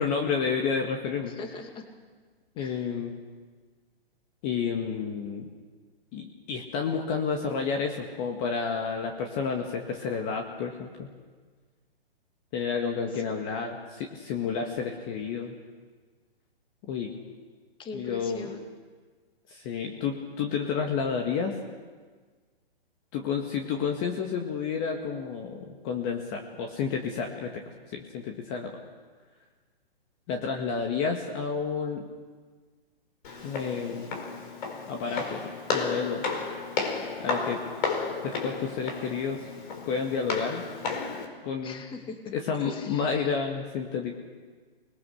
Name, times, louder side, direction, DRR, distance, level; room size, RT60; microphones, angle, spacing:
voice 1, 0.0-1.3 2.6-3.2 4.4-5.5 6.1-11.1 12.5-15.5 16.9-17.1 17.9-18.5 19.5-21.6 23.1-27.6 27.9-28.7 30.3-32.0 33.4-34.1 34.9-35.4 35.7-36.2 37.2-37.6 38.2-39.4 39.9-40.6 41.4-41.8 42.3-44.1, left 6 dB, 30° left, 2 dB, 2.0 m, -30 dB
voice 2, 1.4-1.8 2.6-3.0 13.5-13.7 17.8-18.7 41.6-42.2 42.6-43.3, left 4 dB, 15° left, 5 dB, 2.4 m, -41 dB
Walk footsteps, 33.2-41.3, left 4 dB, 50° left, 4.6 m, -33 dB
25.5 x 21.0 x 6.6 m, 1.5 s
hypercardioid pair, 130°, 30 cm